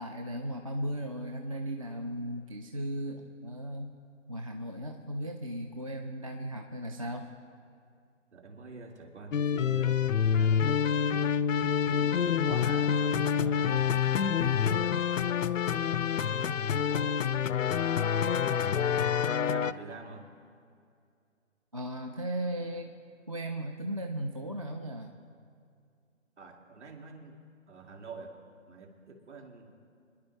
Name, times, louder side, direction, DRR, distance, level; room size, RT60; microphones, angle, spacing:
voice 1, 0.0-4.0 4.3-7.3 21.7-23.0 23.3-25.1, right 1 dB, 25° right, 3 dB, 0.5 m, -36 dB
voice 2, 8.3-11.3 11.9-13.9 14.3-15.2 15.5-16.2 16.7-17.5 18.2-20.3 26.4-28.4 28.7-29.8, right 3 dB, 60° right, 1 dB, 2.6 m, -47 dB
sound 1, 9.3-19.7, left 8 dB, 75° left, 0.6 m, -27 dB
25.0 x 11.0 x 3.3 m, 2.3 s
figure-of-eight pair, 145°, 40 cm